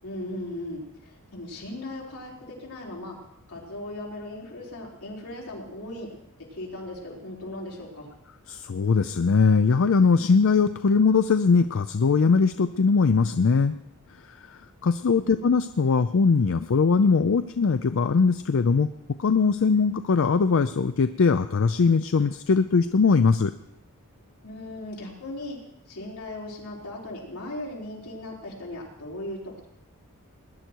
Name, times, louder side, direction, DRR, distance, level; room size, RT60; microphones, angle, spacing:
voice 1, 0.0-3.2 3.5-6.1 6.5-8.1 15.2-15.5 24.4-25.6 25.9-29.7, left 1 dB, 85° left, -3 dB, 4.5 m, -38 dB
voice 2, 8.5-13.8 14.5-18.9 19.2-23.5, left 5 dB, 60° left, 11 dB, 0.4 m, -21 dB
20.0 x 10.5 x 4.6 m, 0.80 s
head